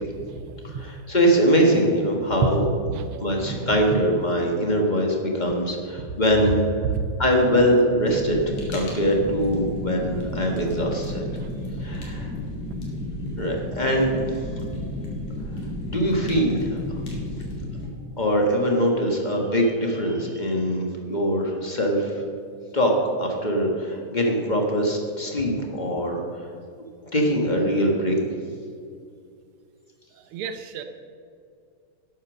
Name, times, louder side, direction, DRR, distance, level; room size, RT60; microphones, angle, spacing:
voice 1, 0.0-0.9 2.4-2.5 2.9-4.0 6.4-6.5 6.9-7.0 11.9-12.0 30.3-30.8, right 6 dB, 85° right, 7 dB, 1.2 m, -30 dB
voice 2, 0.6-2.7 3.2-6.6 7.2-8.4 8.7-11.2 11.8-12.3 13.4-14.2 15.8-16.8 18.2-22.2 22.7-22.9 23.2-26.2 27.1-28.2, equal, 35° left, 0 dB, 0.7 m, -22 dB
Fire, 8.0-17.9, left 1 dB, 70° left, 3.6 m, -32 dB
12.0 x 8.5 x 6.3 m, 2.3 s
omnidirectional pair, 3.4 m